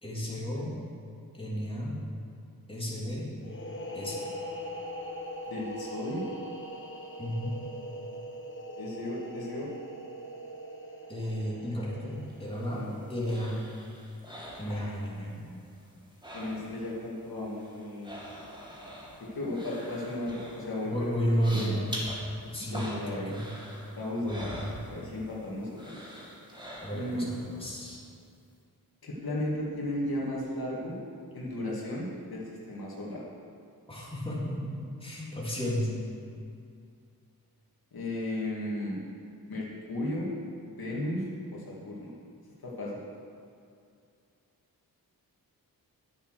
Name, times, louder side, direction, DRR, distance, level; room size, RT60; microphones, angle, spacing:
voice 1, 0.0-0.7 1.3-2.0 2.7-3.3 3.9-4.2 7.2-7.5 11.1-12.8 13.1-13.6 14.6-15.4 20.8-22.0 22.5-23.5 24.2-24.8 26.8-28.0 33.9-34.7 35.0-35.9, equal, 15° left, -6 dB, 3.3 m, -32 dB
sound 1, 3.4-12.9, equal, 35° left, 1.4 m, -41 dB
voice 2, 5.5-6.3 8.8-9.7 12.7-13.1 14.7-14.9 16.3-18.1 19.2-21.8 22.7-23.3 23.9-24.4 24.8-26.0 26.9-27.2 29.0-31.0 31.3-33.2 37.9-39.0 39.5-40.3 40.6-41.2 41.5-42.1 42.6-43.0, left 1 dB, 70° left, -5 dB, 2.4 m, -35 dB
sound 2, 12.3-15.3 15.6-17.0 17.2-25.4 25.7-27.3 27.7-27.8, equal, 10° right, 2.5 m, -44 dB
10.5 x 8.4 x 6.5 m, 2.4 s
cardioid pair, 75°, 38 cm